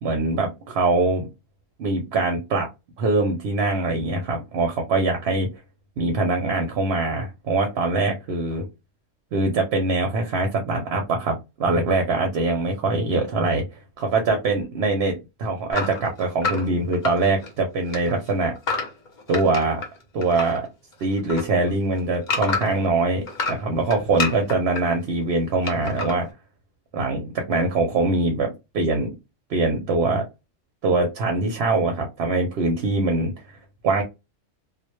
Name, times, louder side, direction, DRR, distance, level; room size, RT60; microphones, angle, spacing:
voice 1, 0.0-1.3 1.8-2.7 3.0-5.5 6.0-8.7 9.3-13.6 14.0-18.5 19.3-19.8 20.1-20.7 21.0-26.3 26.9-29.1 29.5-30.2 30.8-33.6 33.8-34.0, right 3 dB, 65° right, 0.7 m, -23 dB
sound 1, 15.7-17.6 17.8-20.6 20.9-22.9 23.3-24.8 25.6-26.1, left 3 dB, 45° left, 0.7 m, -28 dB
2.1 x 2.0 x 2.9 m
omnidirectional pair, 1.3 m